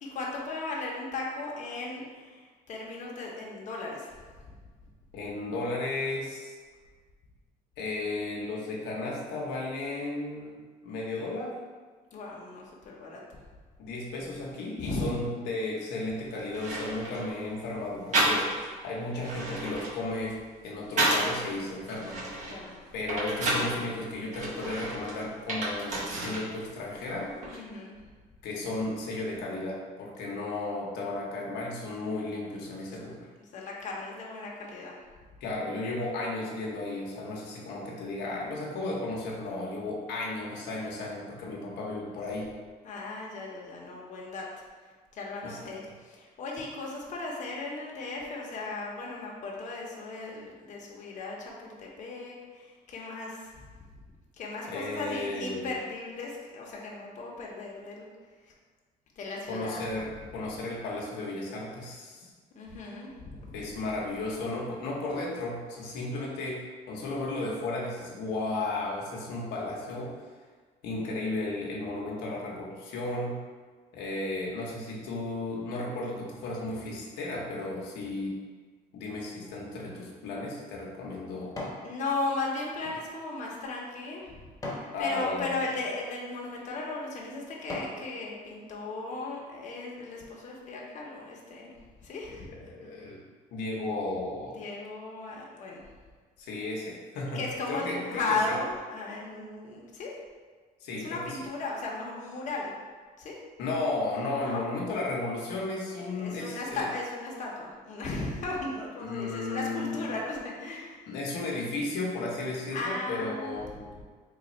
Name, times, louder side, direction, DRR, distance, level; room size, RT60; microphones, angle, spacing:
voice 1, 0.0-4.1 12.1-13.2 14.8-15.1 22.5-22.8 27.5-28.0 33.4-35.0 42.8-44.5 45.1-53.5 54.3-58.1 59.2-59.8 62.5-63.7 81.8-84.3 84.7-91.7 92.0-92.5 94.5-95.8 97.3-100.1 101.0-102.7 103.2-103.4 104.4-104.6 106.2-111.1 112.7-113.5, left 3 dB, 45° left, -3 dB, 0.7 m, -36 dB
voice 2, 5.1-6.5 7.8-11.5 13.8-22.2 22.9-27.3 28.4-33.2 35.4-42.5 45.4-45.7 54.7-55.7 59.5-62.3 63.5-70.1 70.8-73.4 73.9-78.4 78.9-81.6 84.9-85.6 92.6-93.2 93.5-94.6 96.4-98.6 100.8-101.4 103.6-106.9 109.0-110.0 111.1-113.9, left 2 dB, 85° left, -3 dB, 0.7 m, -34 dB
sound 1, 16.1-16.2 16.5-17.3 18.1-18.7 19.1-21.4 21.9-23.7 24.3-26.5 26.8-27.6, right 1 dB, 45° right, 1.0 m, -31 dB
sound 2, 80.0-81.9 82.3-85.0 85.6-85.8 86.5-86.7 87.2-88.0 88.5-88.6, left 1 dB, 20° left, 0.9 m, -42 dB
3.3 x 2.3 x 4.0 m, 1.5 s
cardioid pair, 110°, 17 cm